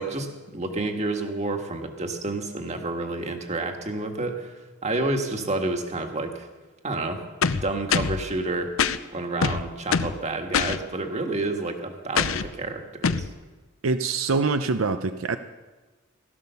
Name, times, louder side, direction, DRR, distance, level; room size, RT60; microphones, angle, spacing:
voice 1, 0.0-6.5 6.8-7.2 7.6-8.7 9.1-13.2, right 2 dB, 35° right, 5 dB, 1.7 m, -29 dB
sound 1, 7.4-8.2 8.8-9.0 9.4-10.2 10.5-10.8 12.2-12.5 13.0-13.3, left 6 dB, 85° left, 0.7 m, -24 dB
voice 2, 13.8-15.4, right 4 dB, 85° right, 9 dB, 0.7 m, -24 dB
16.0 x 12.5 x 6.9 m, 1.3 s
head